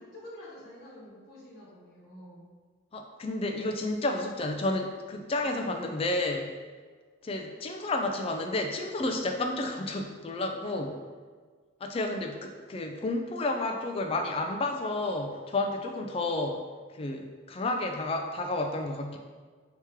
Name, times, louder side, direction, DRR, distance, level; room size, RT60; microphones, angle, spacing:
voice 1, 0.0-2.5, left 1 dB, 45° left, -9 dB, 1.1 m, -48 dB
voice 2, 2.9-6.6 7.2-11.0 11.8-16.6 16.9-19.2, left 2 dB, 25° left, 3 dB, 0.3 m, -31 dB
4.5 x 2.9 x 3.6 m, 1.5 s
head